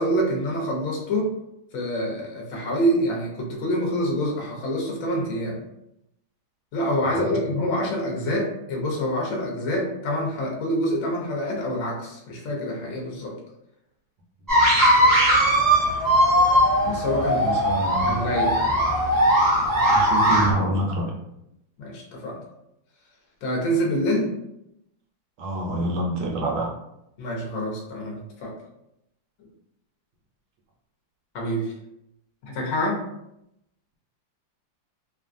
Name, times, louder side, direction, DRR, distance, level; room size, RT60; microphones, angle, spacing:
voice 1, 0.0-1.3 1.7-5.6 6.7-13.3 16.8-17.4 18.0-18.7 21.8-22.4 23.4-24.3 27.2-28.5 31.3-31.7 32.4-33.0, equal, 60° left, -1 dB, 1.0 m, -26 dB
sound 1, 14.5-20.5, equal, 20° right, 0.5 m, -19 dB
voice 2, 17.1-18.2 19.9-21.2 25.4-26.7, right 1 dB, 75° right, 0 dB, 1.2 m, -27 dB
3.1 x 2.3 x 2.5 m, 0.83 s
omnidirectional pair, 2.1 m